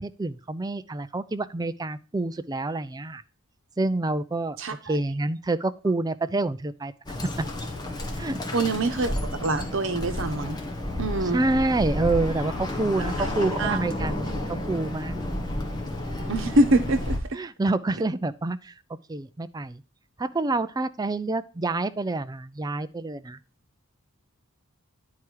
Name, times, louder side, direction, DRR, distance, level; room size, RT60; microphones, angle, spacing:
voice 1, 0.0-3.2 3.8-4.6 4.8-6.9 8.2-8.4 11.3-15.2 17.3-18.7 19.1-19.8 20.2-23.4, right 2 dB, 20° right, 0.4 m, -27 dB
voice 2, 4.6-5.0 8.5-10.6 11.0-11.4 13.2-13.8 16.3-17.4, right 2 dB, 65° right, 1.1 m, -25 dB
Bird, 7.1-17.2, left 1 dB, 20° left, 1.3 m, -31 dB
10.0 x 4.8 x 4.6 m
head